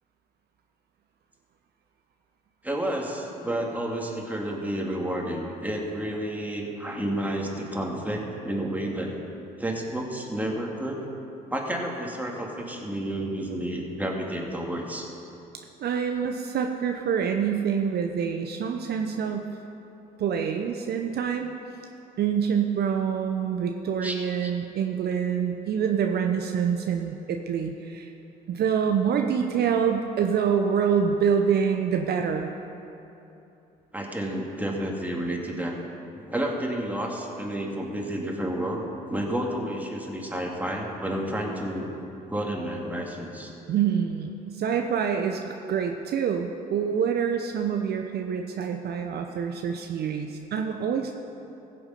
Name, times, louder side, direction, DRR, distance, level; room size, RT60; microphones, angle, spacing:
voice 1, 2.6-9.1 9.6-11.0 11.5-15.1 24.0-24.1 24.4-24.5 33.9-35.7 36.2-38.8 39.1-41.9 42.3-43.5, right 1 dB, 10° right, -1 dB, 2.3 m, -30 dB
voice 2, 15.8-19.5 20.2-21.5 22.2-28.1 28.5-32.5 43.7-51.1, right 7 dB, 55° right, 4 dB, 0.8 m, -26 dB
15.5 x 7.0 x 5.4 m, 2.9 s
hypercardioid pair, 60°, 19 cm